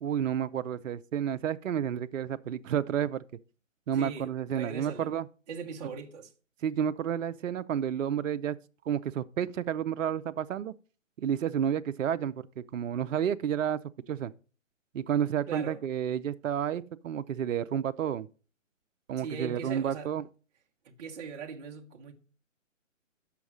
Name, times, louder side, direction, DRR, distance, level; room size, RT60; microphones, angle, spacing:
voice 1, 0.0-3.2 3.9-5.3 6.6-8.6 8.9-10.7 11.2-13.8 14.1-14.3 14.9-18.3 19.1-20.3, right 9 dB, 70° right, 0.6 m, -30 dB
voice 2, 3.9-5.1 5.5-6.3 15.5-15.8 19.2-20.1 20.8-22.1, right 5 dB, 30° right, 1.1 m, -40 dB
7.0 x 5.8 x 6.2 m
hypercardioid pair, 140°, 40 cm